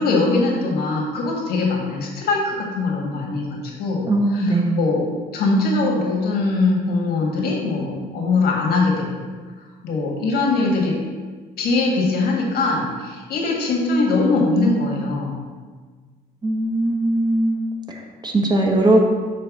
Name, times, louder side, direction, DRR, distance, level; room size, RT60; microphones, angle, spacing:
voice 1, 0.0-9.2 9.8-11.0 11.6-15.5, left 3 dB, 70° left, -1 dB, 1.7 m, -21 dB
voice 2, 4.1-4.8 16.4-19.0, right 1 dB, 25° right, 1 dB, 0.9 m, -20 dB
6.7 x 3.2 x 6.0 m, 1.5 s
cardioid pair, 110°, 17 cm